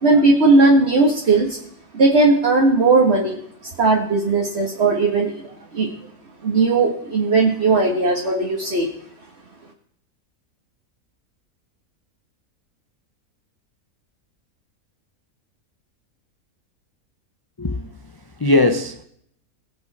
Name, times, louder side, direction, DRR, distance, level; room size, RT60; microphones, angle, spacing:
voice 1, 0.0-1.6 1.9-3.4 3.8-5.9 6.4-8.9, right 3 dB, 45° right, -1 dB, 1.8 m, -17 dB
voice 2, 17.6-18.1 18.4-19.0, left 2 dB, 35° left, 7 dB, 0.4 m, -20 dB
21.0 x 7.7 x 4.2 m, 0.69 s
omnidirectional pair, 1.6 m